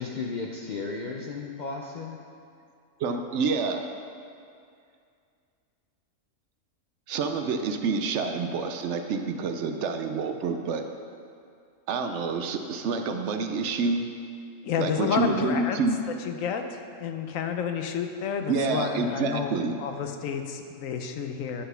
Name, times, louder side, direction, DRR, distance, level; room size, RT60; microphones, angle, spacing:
voice 1, 0.0-2.2, left 4 dB, 60° left, 0 dB, 0.5 m, -34 dB
voice 2, 3.0-3.9 7.1-10.8 11.9-14.0 14.8-16.0 18.5-19.7, right 4 dB, 70° right, 6 dB, 0.8 m, -27 dB
voice 3, 14.6-15.9 16.2-21.6, left 7 dB, 85° left, 6 dB, 1.0 m, -30 dB
10.0 x 4.1 x 5.5 m, 2.4 s
omnidirectional pair, 1.3 m